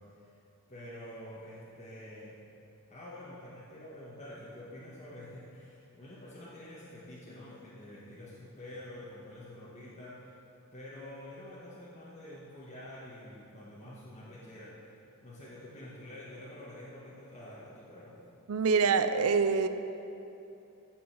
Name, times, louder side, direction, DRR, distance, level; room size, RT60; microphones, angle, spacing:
voice 1, 0.7-2.4 2.9-10.4 10.7-14.9 15.2-18.2, left 1 dB, 30° left, -8 dB, 1.7 m, -47 dB
voice 2, 18.5-19.7, right 5 dB, 70° right, 10 dB, 0.6 m, -25 dB
15.0 x 5.5 x 6.8 m, 2.8 s
head